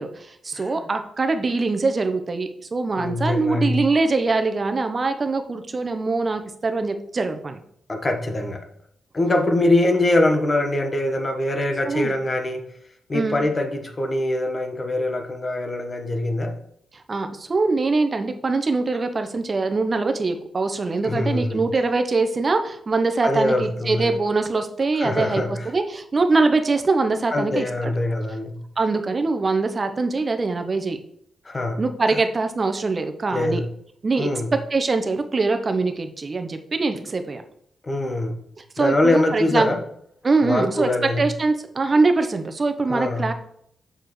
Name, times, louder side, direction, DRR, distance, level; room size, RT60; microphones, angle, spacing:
voice 1, 0.0-7.6 11.9-12.1 13.1-13.4 16.9-27.9 28.8-31.0 31.8-33.6 34.0-34.3 34.7-37.4 38.8-39.7 40.2-40.9 41.2-43.3, right 3 dB, 40° right, 7 dB, 0.8 m, -23 dB
voice 2, 3.0-3.9 7.9-8.7 9.1-12.6 13.1-16.6 21.0-21.6 23.2-24.1 25.0-25.7 27.3-28.6 31.4-31.8 32.1-32.2 33.3-33.7 34.2-34.5 37.8-38.4 38.8-39.8 40.4-41.2 42.9-43.3, left 1 dB, 35° left, 4 dB, 1.3 m, -23 dB
6.6 x 6.5 x 3.2 m, 0.69 s
supercardioid pair, 55°, 0 cm